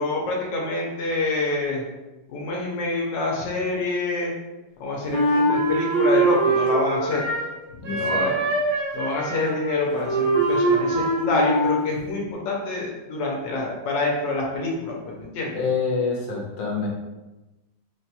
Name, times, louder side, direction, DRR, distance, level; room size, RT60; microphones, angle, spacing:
voice 1, 0.0-1.8 2.3-4.3 4.8-7.2 7.9-8.4 8.9-15.5, left 2 dB, 85° left, -2 dB, 1.4 m, -26 dB
Wind instrument woodwind instrument, 5.1-7.5 7.8-11.9, right 2 dB, 60° right, 1.2 m, -23 dB
voice 2, 7.8-8.3 15.5-16.9, left 4 dB, 70° left, -2 dB, 1.3 m, -26 dB
4.3 x 2.8 x 2.2 m, 1.1 s
omnidirectional pair, 1.9 m